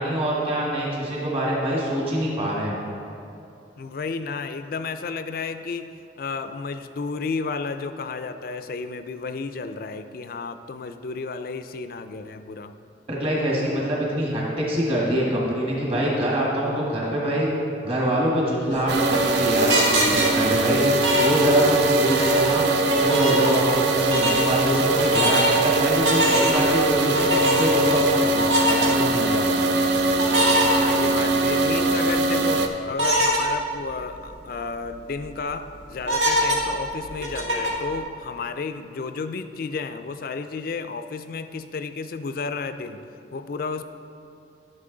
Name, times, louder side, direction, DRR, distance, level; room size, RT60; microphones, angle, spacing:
voice 1, 0.0-2.7 13.1-17.5 17.8-22.7 22.9-29.5, right 1 dB, 30° right, -4 dB, 1.6 m, -24 dB
voice 2, 3.8-12.7 30.6-43.0 43.3-43.8, left 4 dB, 50° left, 10 dB, 0.4 m, -32 dB
sound 1, 18.7-21.8 22.1-23.8 24.1-24.4 25.0-25.6 26.1-26.7 27.2-27.9 28.4-28.9 30.2-31.4 31.9-32.0 33.0-33.4 33.9-34.0 34.3-34.4 34.9-35.2 36.0-37.9, equal, 85° right, 1.6 m, -24 dB
sound 2, 18.9-32.7, right 2 dB, 70° right, 0.6 m, -22 dB
11.0 x 6.7 x 3.8 m, 2.6 s
head